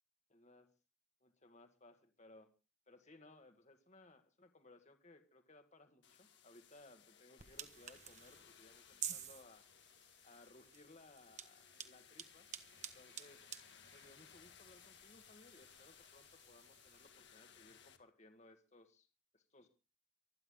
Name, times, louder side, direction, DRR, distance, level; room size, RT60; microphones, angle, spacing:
voice 1, 0.3-0.7 1.2-2.5 2.9-9.7 10.2-12.5 12.9-13.5 13.9-19.1 19.3-19.7, left 2 dB, 35° left, 6 dB, 2.0 m, -63 dB
sound 1, 6.0-18.0, left 8 dB, 60° left, 2.0 m, -63 dB
sound 2, 7.4-17.1, right 9 dB, 35° right, 1.3 m, -52 dB
24.5 x 10.5 x 3.8 m, 0.34 s
head